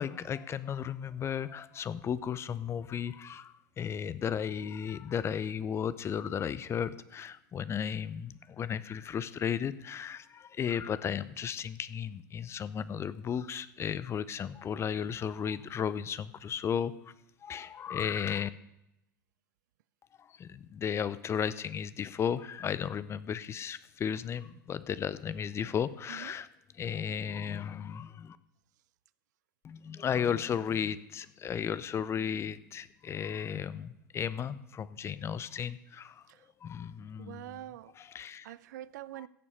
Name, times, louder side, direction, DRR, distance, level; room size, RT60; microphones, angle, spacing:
voice 1, 0.0-17.1 17.4-18.5 20.2-26.5 26.7-28.4 29.6-36.3 36.6-37.6 38.0-38.5, left 8 dB, 25° left, 0.6 m, -34 dB
voice 2, 37.2-37.9 38.4-39.3, right 14 dB, 60° right, 0.5 m, -45 dB
15.5 x 6.9 x 6.7 m
figure-of-eight pair, 85°, 11 cm